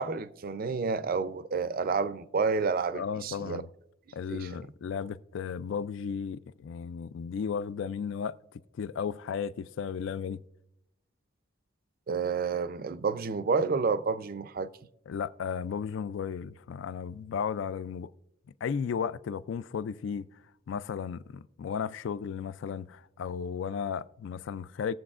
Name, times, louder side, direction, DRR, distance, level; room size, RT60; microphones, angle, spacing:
voice 1, 0.0-3.6 4.3-4.6 12.1-14.7, right 4 dB, 50° right, 0.5 m, -30 dB
voice 2, 2.9-3.7 4.1-8.4 8.8-10.4 15.1-18.1 18.6-20.3 20.7-24.9, left 6 dB, 65° left, 0.3 m, -34 dB
20.0 x 7.6 x 2.4 m
head